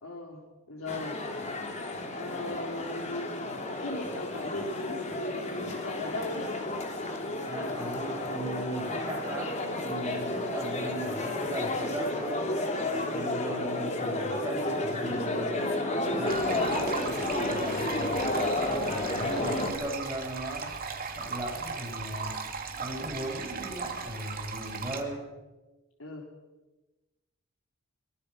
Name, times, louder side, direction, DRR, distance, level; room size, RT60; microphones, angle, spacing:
voice 1, 0.0-1.2 2.1-3.4 3.8-6.5 19.3-19.5 26.0-26.3, left 2 dB, 75° left, 0 dB, 3.7 m, -37 dB
sound 1, 0.9-19.7, left 2 dB, 35° left, 3.2 m, -32 dB
voice 2, 7.4-12.5 13.1-15.8 16.1-20.7 21.1-22.4 22.8-25.2, right 1 dB, 15° right, -2 dB, 7.9 m, -37 dB
sound 2, 16.2-25.0, right 5 dB, 45° right, 2.6 m, -38 dB
23.5 x 22.0 x 6.4 m, 1.1 s
head